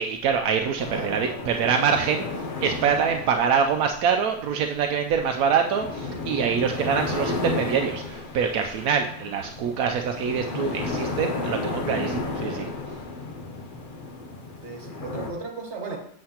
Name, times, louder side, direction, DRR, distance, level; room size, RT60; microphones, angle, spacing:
voice 1, 0.0-12.7, right 6 dB, 80° right, 4 dB, 1.1 m, -25 dB
sound 1, 0.8-15.3, left 3 dB, 40° left, 0.9 m, -33 dB
voice 2, 0.8-1.4 14.6-16.0, right 3 dB, 50° right, 2 dB, 1.5 m, -36 dB
7.6 x 7.3 x 2.9 m, 0.63 s
omnidirectional pair, 1.5 m